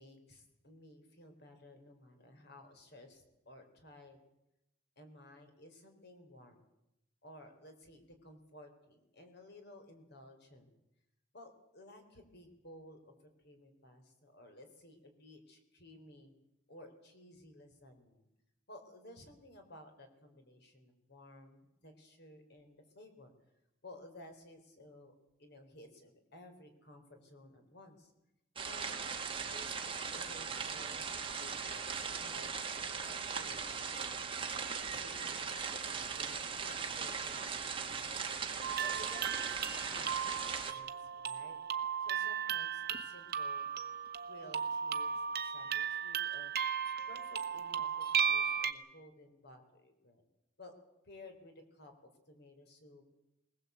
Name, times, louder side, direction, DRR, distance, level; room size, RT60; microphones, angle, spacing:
voice 1, 0.0-4.2 5.0-6.6 7.2-10.7 11.3-13.1 13.4-16.3 16.7-18.3 18.7-23.3 23.8-28.1 28.6-29.1 29.5-31.1 31.4-32.5 33.3-33.9 34.9-38.3 38.8-41.6 42.0-43.8 44.2-46.5 47.1-50.2 50.6-50.7 51.0-51.9 52.3-53.0, left 1 dB, 55° left, 5 dB, 4.0 m, -56 dB
sound 1, 28.6-40.7, right 6 dB, 25° right, 2.0 m, -39 dB
sound 2, 38.6-48.7, right 7 dB, 50° right, 1.2 m, -36 dB
21.0 x 20.0 x 8.1 m, 0.88 s
head